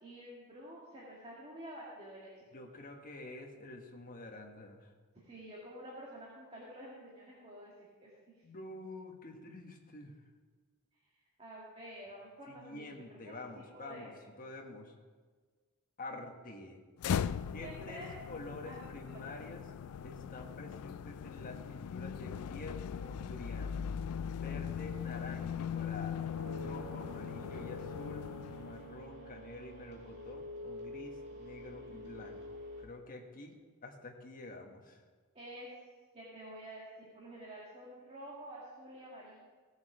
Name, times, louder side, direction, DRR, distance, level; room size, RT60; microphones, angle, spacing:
voice 1, 0.0-2.3 5.2-8.4 11.4-13.3 13.7-14.1 17.6-18.1 18.6-18.8 19.3-19.4 35.4-35.7 36.1-39.4, right 1 dB, 30° right, -5 dB, 1.9 m, -49 dB
voice 2, 2.5-4.9 8.4-10.1 12.5-14.1 14.4-14.9 16.0-16.8 17.5-19.6 20.0-23.8 24.4-28.2 28.6-32.4 32.8-33.5 33.8-35.0, left 2 dB, 40° left, 1 dB, 1.4 m, -48 dB
sound 1, 17.0-29.0, left 7 dB, 75° left, 0.3 m, -39 dB
sound 2, 26.3-32.8, left 1 dB, 50° right, 2.2 m, -47 dB
16.5 x 7.2 x 4.9 m, 1.5 s
head